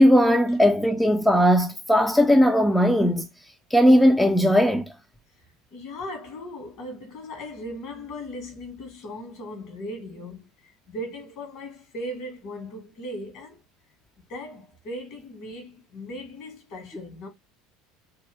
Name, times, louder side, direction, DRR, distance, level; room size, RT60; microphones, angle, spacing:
voice 1, 0.0-3.3 3.7-4.9, equal, 5° left, 0.5 m, -18 dB
voice 2, 5.7-13.6 14.3-17.3, left 1 dB, 50° left, 1.9 m, -38 dB
3.4 x 2.7 x 3.5 m
figure-of-eight pair, 70°, 0 cm